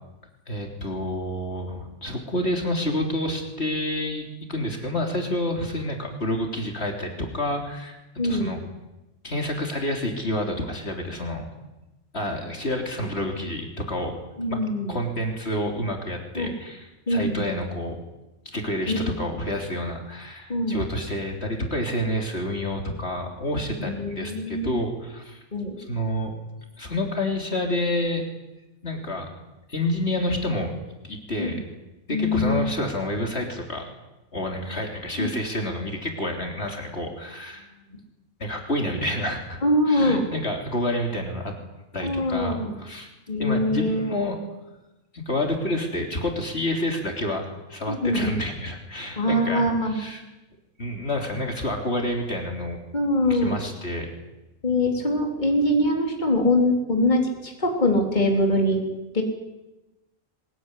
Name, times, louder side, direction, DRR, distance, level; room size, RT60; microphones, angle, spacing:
voice 1, 0.5-8.0 8.2-8.6 9.2-11.5 12.1-14.1 14.5-17.9 18.5-25.4 25.9-26.4 26.8-28.2 28.8-29.3 29.7-30.7 31.0-31.6 32.1-33.9 34.3-37.7 38.4-39.6 39.9-41.5 41.9-43.1 43.4-44.4 45.1-50.2 50.8-52.8 53.2-54.1, left 1 dB, 50° left, 2 dB, 3.8 m, -29 dB
voice 2, 8.2-8.5 14.4-15.0 16.4-16.5 17.1-17.5 18.9-19.2 20.5-20.8 23.8-24.7 25.5-25.7 31.4-31.6 32.1-32.7 35.2-35.3 39.6-40.2 42.0-42.7 43.3-44.1 47.9-48.4 49.2-50.0 52.9-53.6 54.6-58.8 59.1-59.2, left 1 dB, 35° left, 1 dB, 3.6 m, -23 dB
23.0 x 20.5 x 9.9 m, 1.0 s
omnidirectional pair, 1.4 m